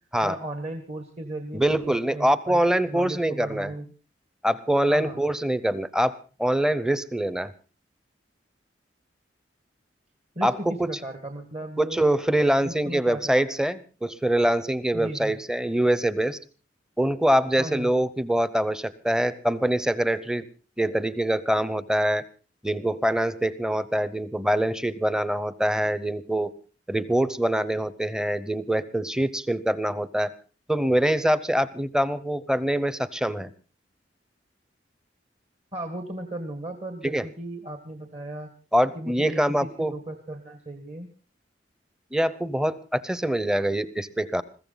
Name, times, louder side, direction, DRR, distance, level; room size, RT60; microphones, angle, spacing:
voice 1, 0.2-3.8 4.9-5.2 10.3-12.0 12.6-13.6 14.9-15.4 17.6-17.9 35.7-38.5 38.9-41.1, right 1 dB, 35° right, 7 dB, 1.7 m, -36 dB
voice 2, 1.5-3.7 4.4-7.5 10.4-10.5 11.8-16.4 17.0-20.4 20.8-22.2 22.6-26.5 26.9-30.3 30.7-33.5 37.0-37.2 38.7-39.9 42.1-44.4, right 1 dB, 5° right, 16 dB, 0.8 m, -24 dB
21.5 x 15.0 x 4.0 m, 0.35 s
head